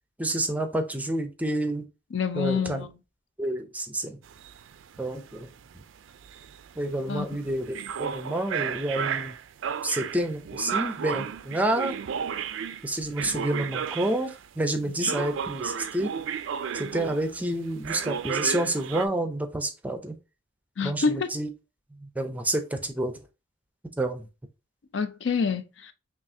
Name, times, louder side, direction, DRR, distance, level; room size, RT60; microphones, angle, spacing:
voice 1, 0.2-1.8 2.3-2.9 3.4-4.2 5.0-5.5 6.8-9.3 9.8-12.0 12.8-16.1 16.7-20.1 20.8-21.5 22.0-23.1 24.0-24.3, right 1 dB, 10° right, 0.5 m, -29 dB
voice 2, 2.1-2.9 7.1-7.3 14.9-15.1 20.8-21.3 24.9-25.9, left 5 dB, 70° left, 0.4 m, -27 dB
sound 1, 4.3-14.5 15.0-17.5 17.8-19.1, right 7 dB, 85° right, 0.4 m, -33 dB
5.8 x 2.4 x 2.7 m
head